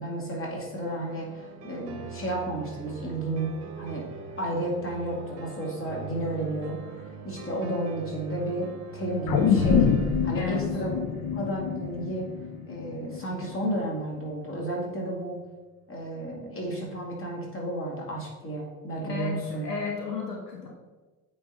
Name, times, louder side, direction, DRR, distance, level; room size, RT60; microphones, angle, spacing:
voice 1, 0.0-4.1 4.4-9.9 10.2-11.0 11.3-12.3 12.7-15.5 15.9-19.6, right 1 dB, 25° left, -2 dB, 2.3 m, -32 dB
sound 1, 0.7-14.7, right 5 dB, 35° right, 1.1 m, -44 dB
sound 2, 9.3-13.8 14.2-14.3, left 6 dB, 45° left, 0.8 m, -26 dB
voice 2, 10.3-10.7 19.1-20.7, left 5 dB, 90° left, 0 dB, 0.9 m, -33 dB
8.5 x 3.9 x 4.3 m, 1.2 s
figure-of-eight pair, 60°, 47 cm